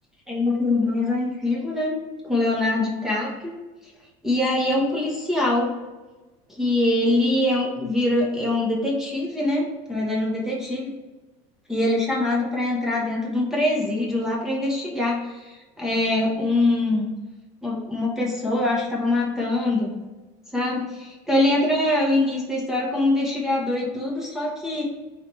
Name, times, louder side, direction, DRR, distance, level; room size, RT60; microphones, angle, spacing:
voice 1, 0.3-2.0 2.2-3.6 4.2-5.8 6.5-10.9 11.7-17.1 17.6-20.0 20.5-24.8, left 2 dB, 5° right, -3 dB, 0.9 m, -23 dB
3.8 x 3.1 x 4.3 m, 1.2 s
cardioid pair, 150°, 16 cm